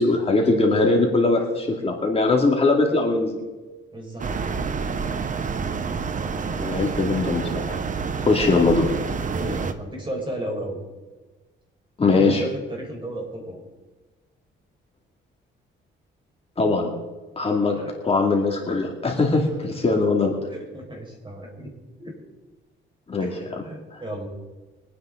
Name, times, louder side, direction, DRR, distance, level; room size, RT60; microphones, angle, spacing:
voice 1, 0.0-3.3 6.6-7.8 8.2-8.9 12.0-12.4 16.6-16.9 17.4-17.7 18.0-20.3 23.1-23.3 23.9-24.0, left 3 dB, 30° left, 0 dB, 2.6 m, -21 dB
voice 2, 3.9-4.7 6.2-6.8 9.3-10.8 12.0-13.6 17.4-18.0 19.6-19.7 20.5-21.7 22.0-22.2 23.2-24.3, right 1 dB, 25° right, 0 dB, 5.3 m, -35 dB
sound 1, 4.2-9.7, right 5 dB, 40° right, 1.1 m, -28 dB
24.0 x 9.6 x 3.9 m, 1.2 s
cardioid pair, 90°, 20 cm